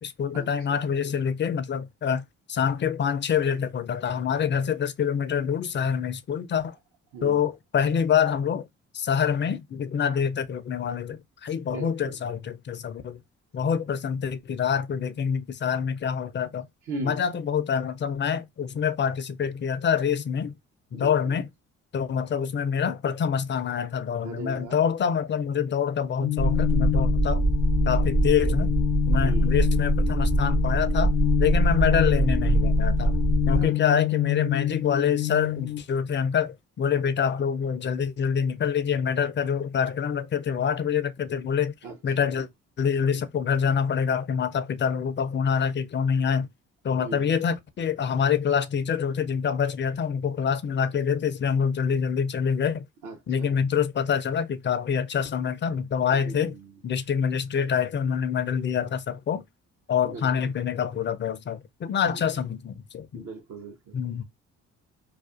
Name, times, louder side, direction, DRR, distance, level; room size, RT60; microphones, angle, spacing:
voice 1, 0.0-2.2 2.5-6.8 7.2-8.7 8.9-13.2 13.5-16.7 17.0-20.5 20.9-21.5 21.9-27.4 27.9-28.7 29.1-31.1 31.4-33.2 33.5-41.7 42.0-42.5 42.8-46.5 46.8-52.8 53.3-56.5 56.8-59.4 59.9-63.2 63.9-64.2, left 7 dB, 35° left, 0.4 m, -26 dB
voice 2, 11.7-12.2 16.9-17.2 20.9-21.4 24.2-24.8 29.2-29.7 33.5-33.7 41.8-42.0 42.2-42.4 47.0-47.4 53.0-53.6 56.1-56.6 60.0-60.5 62.1-62.3 63.1-64.0, right 4 dB, 60° right, 0.8 m, -39 dB
sound 1, 26.2-35.8, left 17 dB, 85° left, 0.6 m, -28 dB
sound 2, 26.4-33.6, right 2 dB, 20° right, 0.5 m, -23 dB
2.4 x 2.3 x 2.4 m
hypercardioid pair, 55°, 34 cm